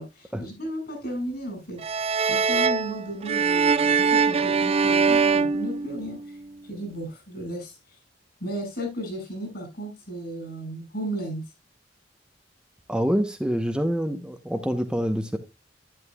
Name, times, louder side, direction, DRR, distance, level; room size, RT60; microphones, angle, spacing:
voice 1, 0.0-6.4 6.6-8.0 8.4-11.4, right 1 dB, 60° left, 6.3 m, -34 dB
sound 1, 1.8-6.4, right 5 dB, 35° right, 0.4 m, -22 dB
voice 2, 12.9-15.4, equal, 5° right, 0.8 m, -26 dB
11.0 x 10.5 x 2.3 m
head